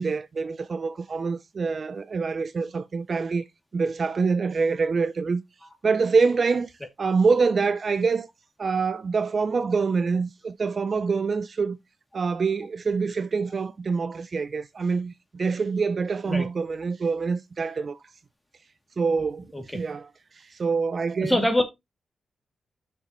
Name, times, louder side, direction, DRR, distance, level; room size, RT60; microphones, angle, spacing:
voice 1, 0.0-3.4 3.7-5.4 5.8-6.7 7.0-8.3 8.6-11.8 12.1-18.0 19.0-21.4, right 4 dB, 50° right, 0.5 m, -25 dB
voice 2, 21.2-21.6, left 1 dB, 10° left, 2.7 m, -23 dB
8.1 x 6.7 x 3.1 m
cardioid pair, 75°, 0 cm